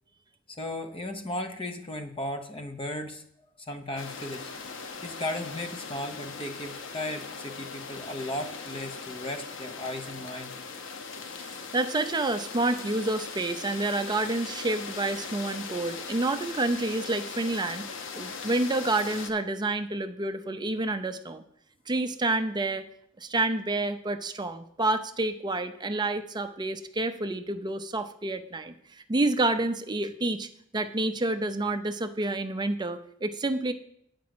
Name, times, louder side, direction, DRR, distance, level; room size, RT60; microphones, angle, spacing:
voice 1, 0.5-3.2 3.7-4.5 5.0-10.5, left 1 dB, 25° left, 6 dB, 0.9 m, -36 dB
sound 1, 4.0-19.3, left 5 dB, 70° left, 0.9 m, -40 dB
voice 2, 11.7-21.4 21.9-22.8 23.2-28.7 29.1-33.7, right 2 dB, 20° right, 9 dB, 0.5 m, -29 dB
8.5 x 5.2 x 7.7 m, 0.70 s
head